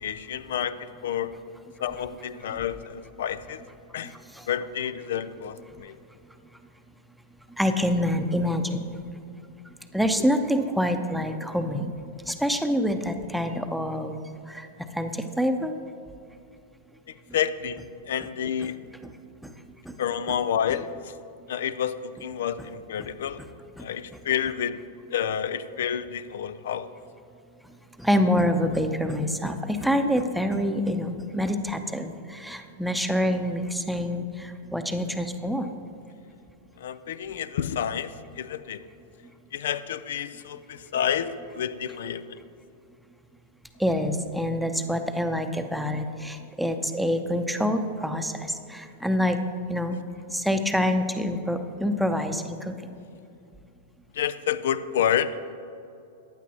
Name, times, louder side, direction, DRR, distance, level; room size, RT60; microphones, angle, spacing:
voice 1, 0.0-1.3 1.8-3.6 3.9-4.1 4.5-5.9 17.3-17.8 18.1-18.7 20.0-21.1 21.5-23.4 23.8-24.8 25.1-26.9 36.8-38.8 39.5-42.4 54.1-55.3, left 9 dB, 65° left, 14 dB, 0.5 m, -29 dB
voice 2, 4.0-4.5 7.6-8.8 9.9-11.9 12.3-14.7 14.9-15.7 18.6-18.7 19.0-19.1 19.4-19.5 19.8-20.0 23.0-23.1 23.8-23.9 28.0-35.7 43.8-49.4 49.7-50.0 50.3-52.7, equal, ahead, 6 dB, 0.8 m, -26 dB
15.0 x 10.0 x 3.0 m, 2.6 s
figure-of-eight pair, 95°, 0 cm